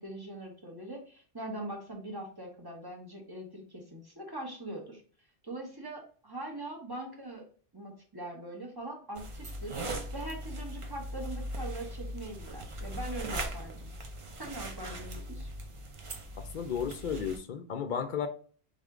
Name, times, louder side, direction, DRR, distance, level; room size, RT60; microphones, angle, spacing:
voice 1, 0.0-5.0 5.4-7.4 7.7-13.9 14.4-15.5, right 1 dB, 20° right, 0 dB, 1.1 m, -42 dB
sound 1, 9.1-17.4, right 1 dB, 40° right, 0.5 m, -39 dB
voice 2, 16.4-18.3, left 7 dB, 55° left, 8 dB, 0.6 m, -34 dB
3.7 x 3.5 x 3.7 m, 0.43 s
omnidirectional pair, 1.1 m